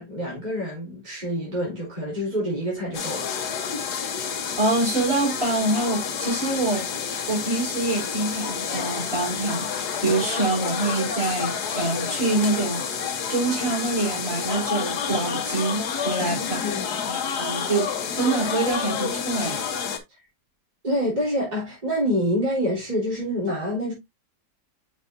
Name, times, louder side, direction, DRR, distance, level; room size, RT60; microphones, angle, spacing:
voice 1, 0.0-3.5 16.3-17.1 20.8-23.9, equal, 25° right, 3.7 m, -27 dB
sound 1, 2.9-20.0, left 7 dB, 70° left, 1.6 m, -29 dB
voice 2, 4.6-6.8 7.3-16.6 17.1-17.9 18.1-19.6, right 3 dB, 45° right, 4.8 m, -25 dB
6.6 x 6.4 x 2.6 m
omnidirectional pair, 1.8 m